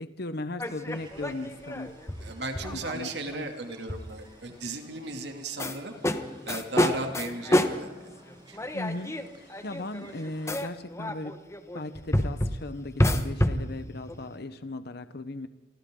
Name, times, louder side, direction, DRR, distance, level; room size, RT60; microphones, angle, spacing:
voice 1, 0.0-2.0 2.7-3.5 8.7-11.4 11.7-15.5, left 2 dB, 65° left, 11 dB, 1.1 m, -37 dB
sound 1, 0.6-3.4 3.9-4.1 5.6-14.4, left 1 dB, 15° left, 1.3 m, -29 dB
sound 2, 0.9-10.6, right 2 dB, 30° right, 4.4 m, -56 dB
voice 2, 2.2-5.9 6.5-7.9 8.5-8.6, right 2 dB, 70° right, 4 dB, 2.8 m, -35 dB
29.5 x 24.5 x 3.9 m, 1.1 s
head